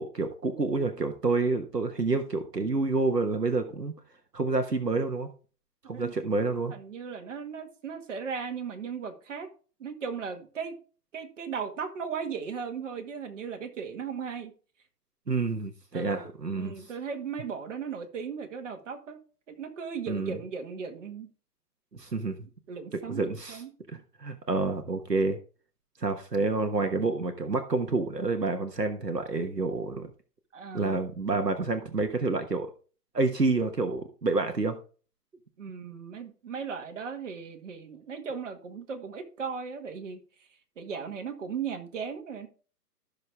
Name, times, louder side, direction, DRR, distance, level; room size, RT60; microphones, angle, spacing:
voice 1, 0.0-3.9 4.3-5.3 5.9-6.7 15.3-16.7 20.1-20.4 21.9-22.5 22.9-23.6 23.9-25.4 26.0-30.1 30.7-32.7 33.1-34.8, right 3 dB, 85° right, 1.4 m, -28 dB
voice 2, 5.8-6.3 6.7-9.5 9.8-10.8 11.1-14.5 15.9-19.2 19.5-21.3 22.7-23.7 30.5-31.1 35.6-40.2 40.8-42.5, right 6 dB, 50° right, 2.0 m, -37 dB
13.0 x 6.7 x 3.5 m
figure-of-eight pair, 125°, 47 cm